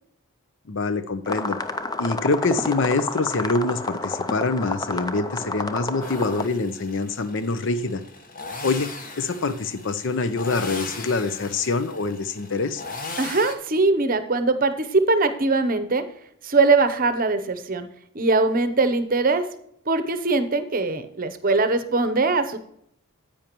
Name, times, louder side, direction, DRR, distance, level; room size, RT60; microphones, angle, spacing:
voice 1, 0.7-1.6 2.0-8.0 8.6-12.8, left 3 dB, 55° left, 12 dB, 0.6 m, -25 dB
sound 1, 1.3-6.4, left 2 dB, 15° left, 0.5 m, -30 dB
sound 2, 6.0-13.6, left 3 dB, 40° left, 1.2 m, -38 dB
voice 2, 13.2-16.0 16.4-17.9 18.1-19.5 19.9-22.6, right 3 dB, 40° right, 10 dB, 0.8 m, -21 dB
10.0 x 8.7 x 3.0 m, 0.72 s
head